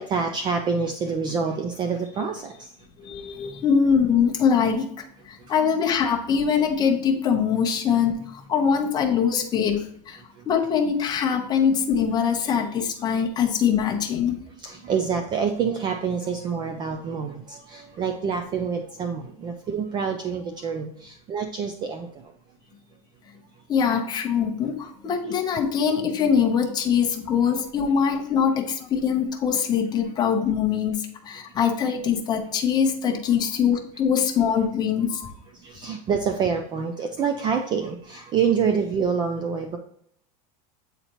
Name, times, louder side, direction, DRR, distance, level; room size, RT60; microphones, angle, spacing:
voice 1, 0.0-2.7 13.1-13.2 14.6-22.3 35.6-39.8, right 6 dB, 20° right, 5 dB, 0.4 m, -27 dB
voice 2, 3.0-10.2 10.5-14.4 23.7-35.3, left 7 dB, 20° left, 1 dB, 0.8 m, -23 dB
7.9 x 4.1 x 2.9 m, 0.69 s
supercardioid pair, 165°, 20 cm